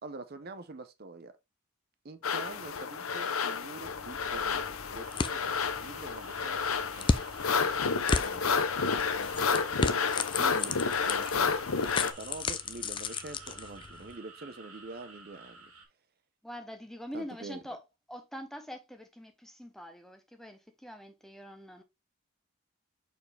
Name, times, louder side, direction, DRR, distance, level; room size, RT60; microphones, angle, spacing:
voice 1, 0.0-1.4 2.0-7.4 7.9-9.6 10.4-10.8 11.0-11.7 12.0-15.7 17.1-17.6, right 3 dB, 45° right, 0.6 m, -46 dB
sound 1, 2.2-12.1, left 5 dB, 80° left, 0.8 m, -30 dB
sound 2, 3.8-14.1, left 4 dB, 25° left, 0.4 m, -35 dB
sound 3, 5.0-15.9, right 3 dB, 90° right, 2.2 m, -52 dB
voice 2, 16.4-17.8 18.1-21.8, equal, ahead, 0.9 m, -44 dB
6.5 x 4.6 x 3.3 m
head